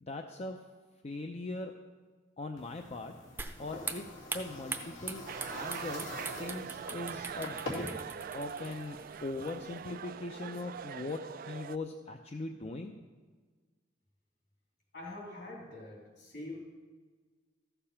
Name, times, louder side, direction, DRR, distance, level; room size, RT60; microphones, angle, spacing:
voice 1, 0.0-0.6 1.0-1.7 2.4-3.1 3.6-5.2 5.5-7.9 8.3-12.9, left 2 dB, 35° left, 4 dB, 0.5 m, -40 dB
sound 1, 2.6-7.9, left 2 dB, 90° left, 2.5 m, -45 dB
sound 2, 3.4-10.0, right 3 dB, 10° right, 0.6 m, -43 dB
sound 3, 5.3-11.8, right 7 dB, 50° right, 0.3 m, -43 dB
voice 2, 14.9-16.6, left 2 dB, 60° left, -2 dB, 3.5 m, -44 dB
14.0 x 6.9 x 5.7 m, 1.4 s
head